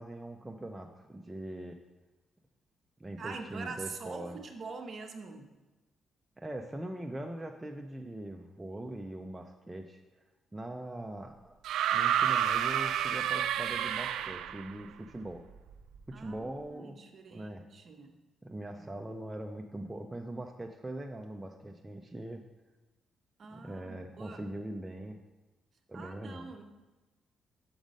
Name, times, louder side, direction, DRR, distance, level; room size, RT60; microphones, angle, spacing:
voice 1, 0.0-1.8 3.0-4.4 6.4-10.0 10.5-11.5 11.9-15.4 16.1-17.0 17.3-17.7 18.4-22.4 23.5-25.2 25.9-26.5, right 1 dB, 10° right, 2 dB, 0.3 m, -41 dB
voice 2, 3.2-5.5 16.1-18.2 23.4-24.5 25.9-26.6, right 4 dB, 40° right, 4 dB, 0.7 m, -44 dB
sound 1, 11.6-14.7 15.9-16.0, right 10 dB, 85° right, 0.3 m, -29 dB
6.2 x 5.2 x 5.2 m, 1.1 s
cardioid pair, 170°, 0 cm